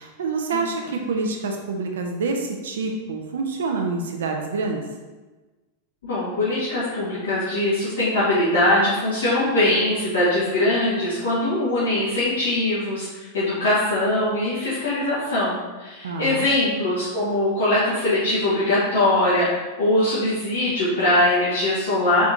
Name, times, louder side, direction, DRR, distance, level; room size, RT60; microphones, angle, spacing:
voice 1, 0.0-4.9 16.0-16.5, right 4 dB, 65° right, 2 dB, 0.4 m, -27 dB
voice 2, 6.0-19.5 19.8-22.2, left 1 dB, 65° left, -11 dB, 1.1 m, -21 dB
3.5 x 3.4 x 2.7 m, 1.2 s
figure-of-eight pair, 90°, 0 cm